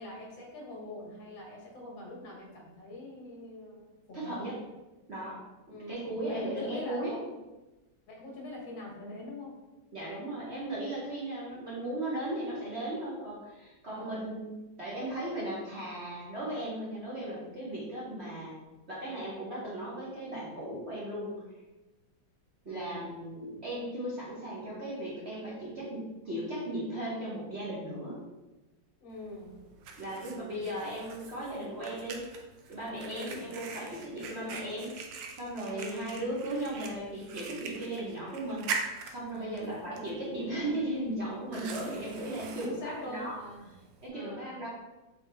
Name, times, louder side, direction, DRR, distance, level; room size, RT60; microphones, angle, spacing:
voice 1, 0.0-4.3 5.7-7.0 8.1-9.5 13.9-14.3 22.7-23.0 29.0-29.5 33.1-33.5 35.7-36.2 39.3-39.8 42.6-43.7 44.1-44.7, left 1 dB, 75° left, -2 dB, 1.8 m, -43 dB
voice 2, 4.1-4.6 5.1-5.4 5.7-7.2 9.9-18.6 18.9-21.4 22.6-28.2 30.0-32.3 32.7-43.4 44.0-44.7, right 1 dB, 45° right, -7 dB, 0.9 m, -37 dB
Fire, 29.1-44.1, right 5 dB, 75° right, 1.3 m, -43 dB
4.3 x 3.4 x 3.2 m, 1.1 s
omnidirectional pair, 2.1 m